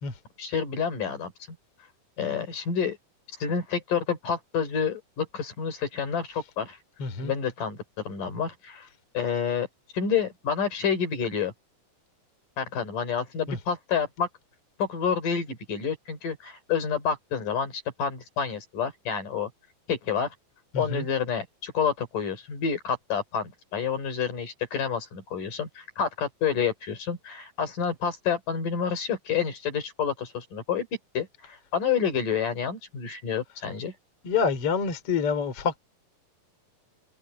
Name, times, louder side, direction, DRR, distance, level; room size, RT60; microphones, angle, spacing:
voice 1, 0.4-1.3 2.2-3.0 3.4-6.8 7.2-7.8 8.0-8.9 9.1-9.7 9.9-11.5 12.6-14.3 14.8-19.5 19.9-20.4 20.8-30.9 31.1-33.9, left 7 dB, 55° left, 5.5 m, -29 dB
voice 2, 7.0-7.3 13.5-13.6 20.7-21.0 34.2-35.8, left 5 dB, 40° left, 4.0 m, -27 dB
omnidirectional pair, 4.4 m